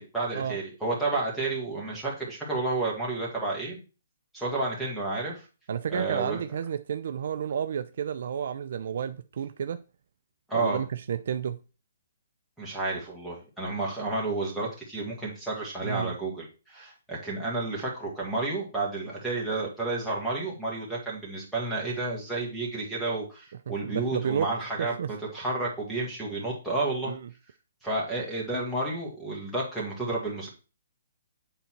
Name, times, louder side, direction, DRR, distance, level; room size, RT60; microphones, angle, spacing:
voice 1, 0.0-3.8 4.3-5.4 5.9-6.4 10.5-10.8 12.6-24.9 25.3-27.1 27.8-30.5, right 2 dB, ahead, -7 dB, 1.9 m, -31 dB
voice 2, 5.7-9.8 10.5-11.6 15.8-16.1 23.7-24.5 24.8-25.1 27.0-27.3, right 8 dB, 55° right, 10 dB, 0.5 m, -31 dB
8.2 x 4.0 x 4.6 m, 0.33 s
hypercardioid pair, 170°, 0 cm